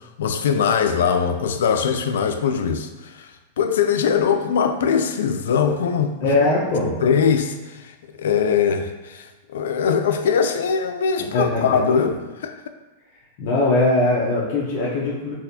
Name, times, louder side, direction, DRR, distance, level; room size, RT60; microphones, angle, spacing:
voice 1, 0.2-3.3 3.6-6.3 7.0-12.2 12.4-12.5, left 6 dB, 80° left, 7 dB, 0.3 m, -21 dB
voice 2, 6.2-7.0 11.3-11.8 13.4-15.3, left 2 dB, 45° left, -6 dB, 0.7 m, -20 dB
4.0 x 2.4 x 2.7 m, 1.2 s
supercardioid pair, 160°, 0 cm